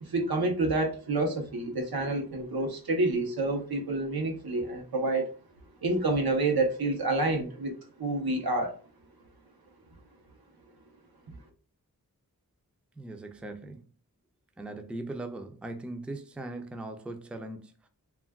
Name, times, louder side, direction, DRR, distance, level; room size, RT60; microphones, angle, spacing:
voice 1, 0.0-5.3 5.8-8.8, right 2 dB, 90° right, 0.7 m, -28 dB
voice 2, 13.0-13.8 14.6-17.9, right 2 dB, 5° right, 0.3 m, -39 dB
2.3 x 2.2 x 3.4 m
wide cardioid pair, 65°, 36 cm